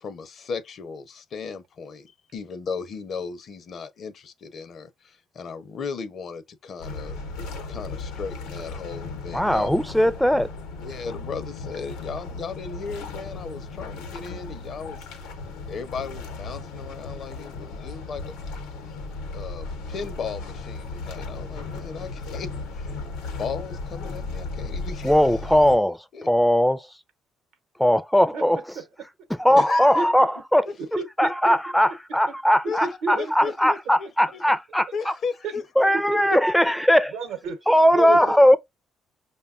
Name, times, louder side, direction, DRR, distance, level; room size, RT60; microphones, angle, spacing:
voice 1, 0.0-7.2 7.7-9.7 10.8-15.0 15.7-18.3 19.3-23.0 23.4-25.2 26.1-26.3 29.5-30.1 30.7-30.8 32.6-32.9 33.2-34.4 34.9-35.9, left 5 dB, 55° left, 0.5 m, -36 dB
sound 1, 6.8-25.8, left 3 dB, 90° left, 0.7 m, -36 dB
voice 2, 9.3-10.5 25.0-26.0 26.3-26.8 27.8-28.6 29.4-30.7 31.2-34.9 35.8-37.1 37.7-38.6, equal, 5° left, 0.3 m, -19 dB
voice 3, 30.8-31.6 32.8-33.7 35.9-36.2 37.1-37.6 37.9-38.3, right 4 dB, 75° right, 0.8 m, -31 dB
5.1 x 2.2 x 2.4 m
supercardioid pair, 75°, 0 cm